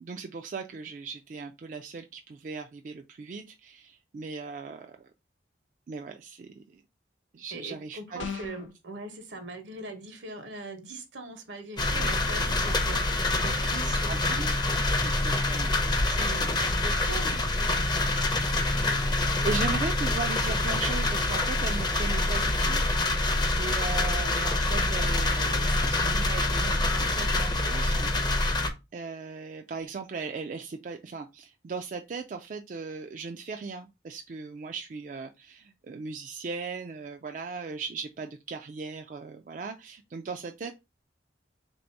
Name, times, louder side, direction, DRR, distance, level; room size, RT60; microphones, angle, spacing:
voice 1, 0.0-5.1 5.9-6.8 7.3-8.4 14.1-14.5 15.0-15.7 18.8-22.8 23.6-28.1 28.9-40.7, right 4 dB, 45° right, 0.3 m, -38 dB
voice 2, 7.5-14.5 16.1-18.1, right 2 dB, 75° right, 1.0 m, -41 dB
sound 1, 8.2-8.7, left 6 dB, 80° left, 0.5 m, -36 dB
sound 2, 11.8-28.7, left 2 dB, 25° left, 0.5 m, -26 dB
3.4 x 2.7 x 4.4 m
head